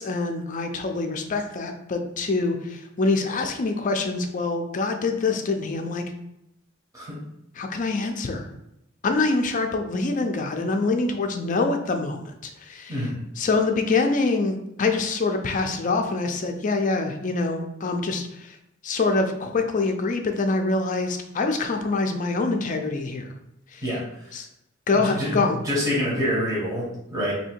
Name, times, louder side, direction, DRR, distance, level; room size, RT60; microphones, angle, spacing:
voice 1, 0.0-6.0 7.6-8.5 9.0-13.1 13.4-18.6 18.8-23.3 23.7-23.9 24.3-24.5 24.9-25.6, left 3 dB, 40° left, 5 dB, 0.4 m, -25 dB
voice 2, 23.8-24.3 24.9-27.3, equal, 15° right, -7 dB, 1.0 m, -27 dB
2.8 x 2.7 x 4.3 m, 0.85 s
head